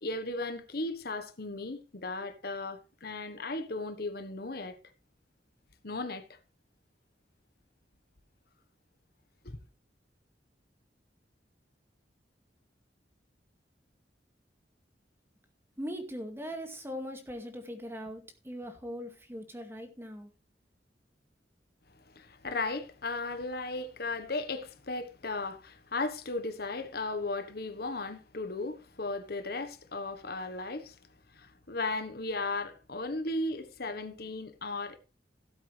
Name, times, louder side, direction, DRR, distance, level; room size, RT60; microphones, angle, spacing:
voice 1, 0.0-4.8 5.8-6.2 9.4-9.6 22.1-31.0 31.3-35.0, left 2 dB, 60° left, 1.3 m, -36 dB
voice 2, 15.8-20.3, equal, 15° right, 2.1 m, -40 dB
17.0 x 8.1 x 3.4 m
head